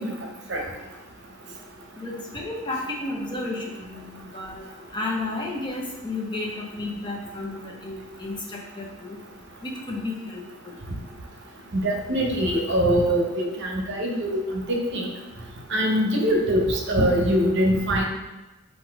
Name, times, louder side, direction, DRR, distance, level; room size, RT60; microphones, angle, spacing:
voice 1, 2.0-4.6 4.9-9.2 9.6-10.8, left 2 dB, 20° left, -1 dB, 0.6 m, -32 dB
voice 2, 11.7-14.4 14.7-15.1 15.7-18.1, equal, 55° right, 1 dB, 0.7 m, -23 dB
4.0 x 2.6 x 4.5 m, 1.1 s
head